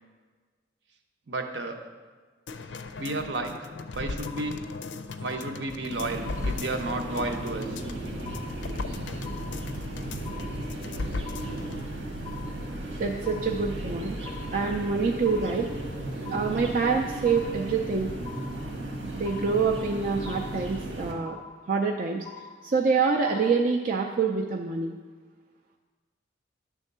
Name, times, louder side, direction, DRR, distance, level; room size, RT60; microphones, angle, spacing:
voice 1, 1.3-1.8 3.0-4.6 5.2-7.8, right 2 dB, 70° right, 4 dB, 0.8 m, -32 dB
sound 1, 2.5-11.9 12.2-12.3, left 3 dB, 80° left, 0.5 m, -37 dB
sound 2, 4.3-4.9 5.3-5.9 6.3-6.9 7.3-7.9 8.3-8.9 9.3-9.9 10.3-10.9 11.3-11.9 12.3-12.9 13.3-13.9 14.3-14.9 15.3-15.9 16.2-16.9 17.2-17.9 18.3-18.9 19.3-19.9 20.3-20.9 21.3-21.9 22.3-22.9 23.3-23.9, left 9 dB, 25° left, 0.4 m, -46 dB
sound 3, 5.9-21.1, right 1 dB, 85° right, 1.6 m, -35 dB
voice 2, 13.0-14.2 14.5-15.7 16.3-18.1 19.1-21.4 21.7-22.2 22.6-25.0, right 4 dB, 45° right, 1 dB, 0.5 m, -26 dB
10.0 x 3.6 x 6.6 m, 1.4 s
head